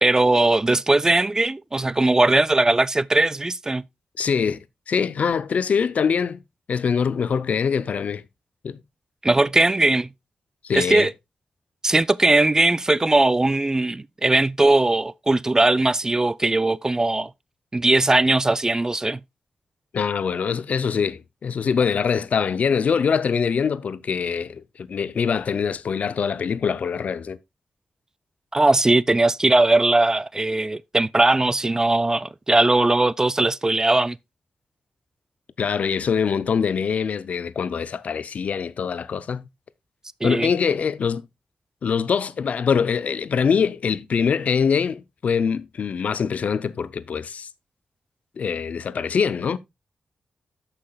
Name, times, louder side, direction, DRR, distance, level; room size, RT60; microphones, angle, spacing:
voice 1, 0.0-3.8 9.2-10.1 10.7-11.1 11.8-17.3 17.7-19.2 28.5-34.2 40.2-40.5, right 2 dB, 25° right, 0.4 m, -19 dB
voice 2, 4.2-4.6 4.9-6.4 6.7-8.2 8.6-8.8 10.6-11.1 19.9-27.4 35.6-39.5 40.2-41.3 41.8-47.5 48.4-49.6, left 6 dB, 70° left, 0.5 m, -23 dB
13.0 x 5.8 x 2.3 m
cardioid pair, 55°, 3 cm